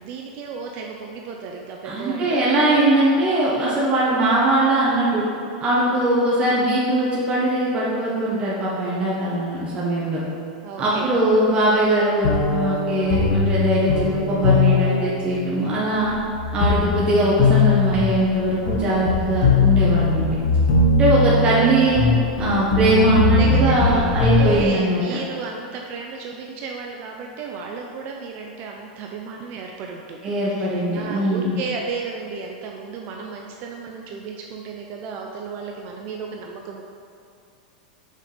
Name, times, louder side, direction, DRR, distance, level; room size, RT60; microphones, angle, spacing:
voice 1, 0.0-2.4 5.8-6.0 10.6-11.1 23.4-36.8, right 5 dB, 45° right, 1 dB, 0.6 m, -33 dB
voice 2, 1.8-5.2 5.6-10.2 10.8-16.1 16.5-20.4 21.0-22.0 22.4-25.2 30.2-31.6, right 1 dB, 25° right, -7 dB, 1.4 m, -20 dB
sound 1, 12.2-24.7, left 3 dB, 70° left, 1.4 m, -20 dB
6.6 x 5.0 x 5.2 m, 2.5 s
supercardioid pair, 135°, 4 cm